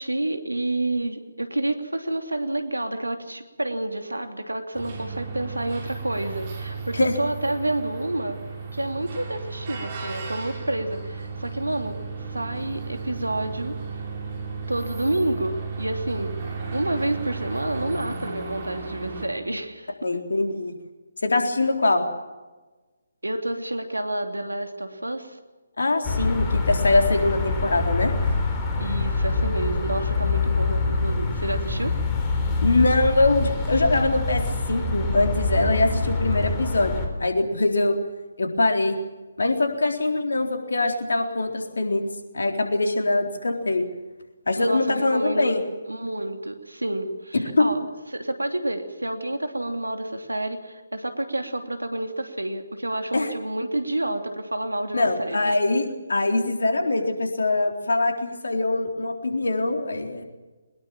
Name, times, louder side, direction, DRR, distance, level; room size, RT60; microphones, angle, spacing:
voice 1, 0.0-8.4 8.7-12.0 12.3-13.7 14.7-16.4 16.7-20.1 23.2-25.4 28.8-31.9 44.6-45.5 45.9-47.8 48.1-55.6, right 1 dB, 80° right, 6 dB, 3.1 m, -29 dB
sound 1, 4.7-19.3, right 4 dB, 35° right, 7.3 m, -34 dB
voice 2, 20.0-20.7 21.2-22.0 25.8-28.1 32.6-38.0 38.4-39.0 39.4-42.1 42.3-43.9 44.5-45.6 47.3-47.7 53.1-53.3 54.9-60.2, left 2 dB, 65° left, 4 dB, 3.9 m, -23 dB
sound 2, 26.0-37.1, left 3 dB, 20° left, 4.3 m, -25 dB
22.5 x 21.0 x 7.5 m, 1.2 s
figure-of-eight pair, 145°, 0 cm